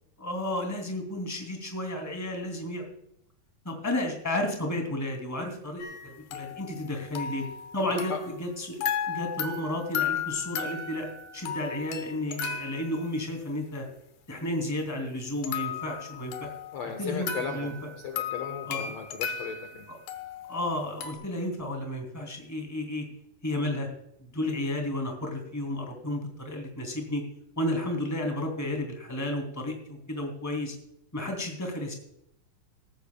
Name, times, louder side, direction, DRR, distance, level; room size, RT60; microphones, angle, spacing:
voice 1, 0.2-2.8 3.6-7.5 7.7-8.1 8.4-11.1 11.3-13.9 14.3-16.5 17.0-17.7 18.7-18.8 20.5-23.0 23.4-23.9 24.3-27.2 27.6-30.7 31.1-31.9, left 1 dB, 5° left, 3 dB, 2.3 m, -32 dB
sound 1, 5.8-8.5 8.8-13.5 15.4-21.1, left 7 dB, 80° left, 2.9 m, -35 dB
voice 2, 7.9-8.2 16.7-19.9, left 6 dB, 60° left, 5 dB, 2.0 m, -36 dB
17.5 x 14.5 x 2.3 m, 0.75 s
omnidirectional pair, 4.1 m